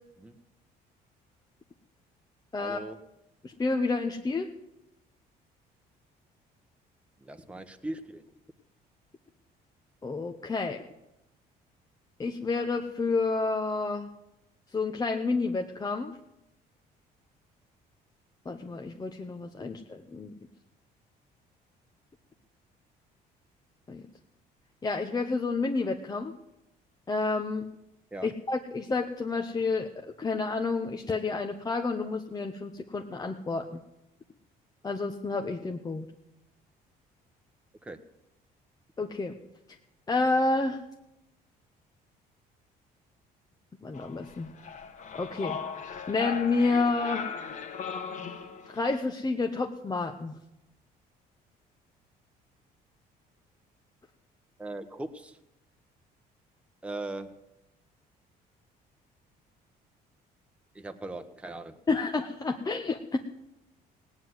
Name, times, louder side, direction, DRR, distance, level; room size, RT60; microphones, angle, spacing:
voice 1, 2.6-3.0 7.2-8.3 19.6-19.7 28.1-28.3 37.8-38.0 54.6-55.4 56.8-57.3 60.7-61.8, right 2 dB, 5° right, 6 dB, 1.1 m, -39 dB
voice 2, 3.4-4.5 10.0-10.8 12.2-14.1 14.7-16.1 18.4-20.3 23.9-24.0 24.8-26.3 27.1-27.6 28.2-29.9 30.2-33.8 34.8-36.0 39.0-39.3 40.1-40.8 43.8-44.5 45.1-45.6 46.1-47.3 48.7-50.3 61.9-63.2, left 3 dB, 20° left, 4 dB, 1.0 m, -29 dB
sound 1, 43.9-49.0, left 6 dB, 50° left, 1.6 m, -38 dB
17.5 x 9.4 x 8.1 m, 0.90 s
cardioid pair, 110°, 17 cm